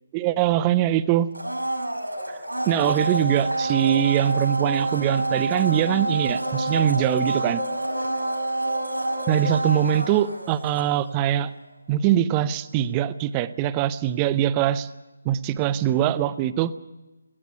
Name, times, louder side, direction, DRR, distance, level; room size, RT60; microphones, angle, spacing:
voice 1, 0.1-1.3 2.3-7.6 9.3-11.5 11.9-14.9 15.2-16.7, right 11 dB, 15° right, 16 dB, 0.6 m, -22 dB
Domestic sounds home sounds, 1.3-11.3 11.6-11.7, right 1 dB, 80° right, 6.7 m, -28 dB
17.5 x 16.0 x 9.6 m, 1.1 s
figure-of-eight pair, 150°, 0 cm